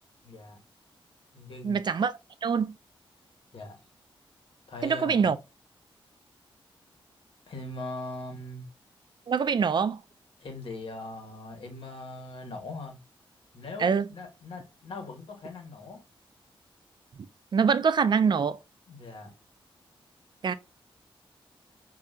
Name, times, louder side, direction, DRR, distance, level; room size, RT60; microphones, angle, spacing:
voice 1, 0.2-0.6 1.3-1.8 3.5-3.8 4.7-5.2 7.5-8.7 10.4-13.0 13.5-16.0 18.9-19.3, left 2 dB, 75° left, 1.4 m, -40 dB
voice 2, 1.6-2.1 2.4-2.7 4.8-5.4 9.3-10.0 13.8-14.1 17.5-18.6 20.4-20.5, right 6 dB, 55° right, 0.5 m, -24 dB
5.4 x 2.7 x 2.4 m
cardioid pair, 80°, 9 cm